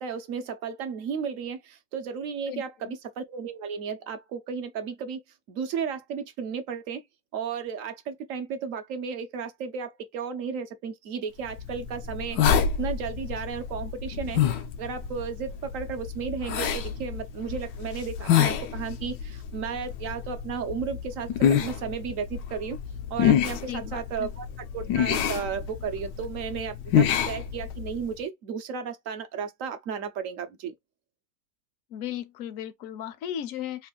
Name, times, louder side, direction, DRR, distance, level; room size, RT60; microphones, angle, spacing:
voice 1, 0.0-5.2 5.5-7.0 7.3-14.4 14.8-22.8 23.1-24.5 24.7-30.7, right 6 dB, 70° right, 0.8 m, -34 dB
voice 2, 2.5-2.9 23.7-24.3 31.9-33.9, left 10 dB, 65° left, 0.8 m, -36 dB
sound 1, 11.5-28.1, left 8 dB, 85° left, 1.3 m, -28 dB
3.4 x 2.4 x 3.7 m
omnidirectional pair, 1.9 m